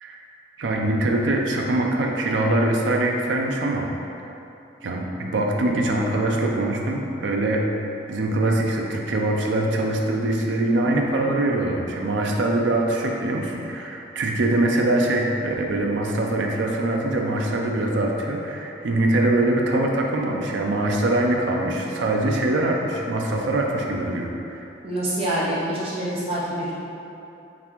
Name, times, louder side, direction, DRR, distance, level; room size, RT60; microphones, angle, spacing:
voice 1, 0.6-3.9 4.8-24.7, right 2 dB, 80° right, 1 dB, 0.4 m, -23 dB
voice 2, 24.8-26.7, right 1 dB, 30° right, -8 dB, 0.6 m, -26 dB
3.9 x 3.6 x 2.9 m, 2.9 s
head